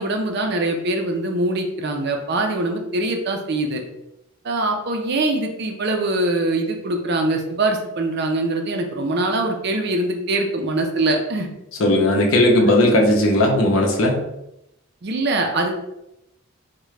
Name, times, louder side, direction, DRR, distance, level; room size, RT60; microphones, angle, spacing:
voice 1, 0.0-3.8 4.4-11.5 15.0-15.7, right 2 dB, 50° right, 3 dB, 0.5 m, -23 dB
voice 2, 11.8-14.2, left 1 dB, 75° left, 1 dB, 0.7 m, -17 dB
3.6 x 2.2 x 3.2 m, 0.86 s
head